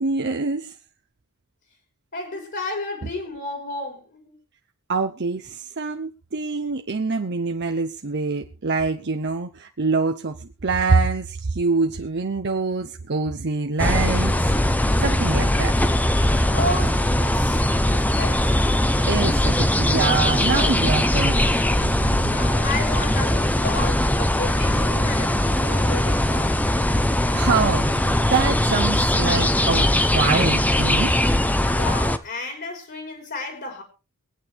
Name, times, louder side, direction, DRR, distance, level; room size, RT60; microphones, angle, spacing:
voice 1, 0.0-0.7 4.9-14.4 15.0-15.7 19.1-21.4 27.3-31.1, right 4 dB, 50° right, 0.8 m, -25 dB
voice 2, 2.1-4.3 16.5-17.6 17.9-18.7 21.8-26.7 31.7-33.8, left 2 dB, 55° left, 4.1 m, -32 dB
sound 1, 13.8-32.2, left 1 dB, 5° left, 0.8 m, -20 dB
23.0 x 9.2 x 3.4 m
head